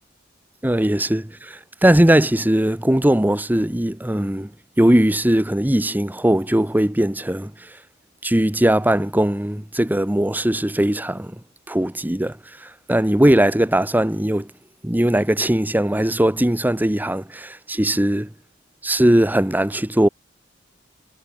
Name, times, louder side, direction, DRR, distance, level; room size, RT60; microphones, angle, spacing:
voice 1, 0.6-4.5 4.8-7.8 8.2-11.3 11.7-14.5 14.8-18.3 18.8-20.1, right 1 dB, 10° right, 1.0 m, -19 dB
head